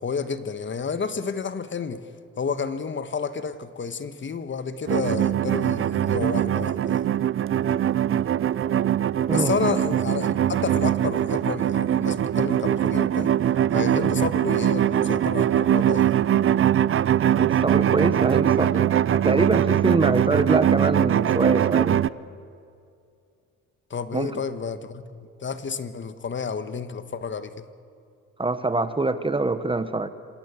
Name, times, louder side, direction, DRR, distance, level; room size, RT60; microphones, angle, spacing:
voice 1, 0.0-2.0 2.4-7.1 9.3-13.3 13.7-16.1 23.9-27.6, left 5 dB, 40° left, 12 dB, 1.4 m, -30 dB
sound 1, 4.9-22.1, right 10 dB, 45° right, 0.6 m, -22 dB
voice 2, 17.4-22.0 24.1-24.4 28.4-30.1, right 2 dB, 15° right, 12 dB, 1.0 m, -24 dB
26.5 x 17.5 x 8.3 m, 2.4 s
cardioid pair, 90°, 30 cm